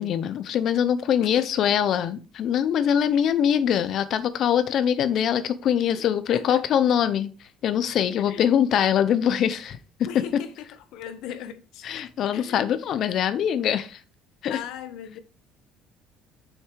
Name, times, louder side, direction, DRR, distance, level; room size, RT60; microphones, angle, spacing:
voice 1, 0.0-7.3 7.6-9.8 10.3-10.4 11.8-14.0 14.4-14.6, left 9 dB, 50° left, 0.9 m, -23 dB
voice 2, 1.2-1.6 3.1-3.2 6.3-6.6 8.3-8.5 10.1-11.9 12.3-12.6 14.5-15.2, left 10 dB, 75° left, 1.2 m, -38 dB
7.1 x 6.6 x 4.8 m
cardioid pair, 155°, 0 cm